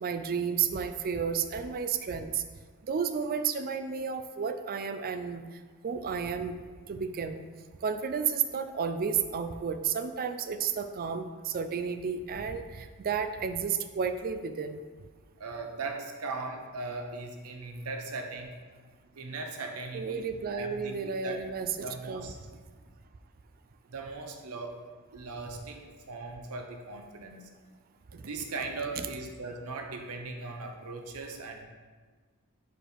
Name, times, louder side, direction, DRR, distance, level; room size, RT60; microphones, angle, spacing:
voice 1, 0.0-2.4 2.9-5.4 5.8-6.5 6.9-7.4 7.8-14.8 19.9-22.3 29.0-29.1, right 6 dB, 40° right, 9 dB, 0.4 m, -32 dB
voice 2, 15.4-18.5 19.2-21.4 21.8-22.4 23.9-24.8 25.1-27.5 28.1-31.6, right 3 dB, 75° right, 4 dB, 0.8 m, -39 dB
5.0 x 4.4 x 5.0 m, 1.5 s
head